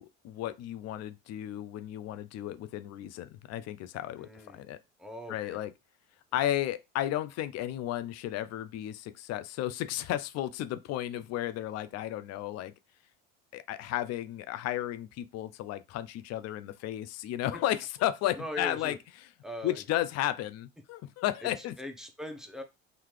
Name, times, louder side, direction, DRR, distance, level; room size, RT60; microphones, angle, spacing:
voice 1, 0.0-4.8 5.3-5.7 6.3-12.7 13.5-19.0 19.6-21.7, left 13 dB, 55° left, 0.5 m, -33 dB
voice 2, 4.2-4.6 5.0-5.6 18.4-19.0 19.4-19.8 21.4-22.6, left 1 dB, ahead, 0.8 m, -41 dB
4.0 x 2.7 x 3.2 m
supercardioid pair, 85°, 31 cm